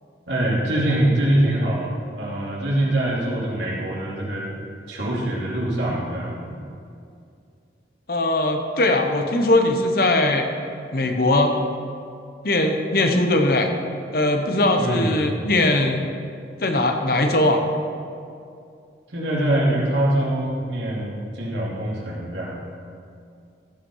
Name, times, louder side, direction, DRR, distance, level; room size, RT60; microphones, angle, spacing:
voice 1, 0.3-4.5 4.9-6.5 14.8-15.4 19.1-22.6, right 1 dB, 85° right, -4 dB, 2.7 m, -24 dB
voice 2, 8.1-10.5 10.9-11.5 12.4-13.7 14.1-16.0 16.6-17.6, left 2 dB, 55° left, 4 dB, 1.0 m, -20 dB
14.5 x 5.9 x 5.6 m, 2.4 s
head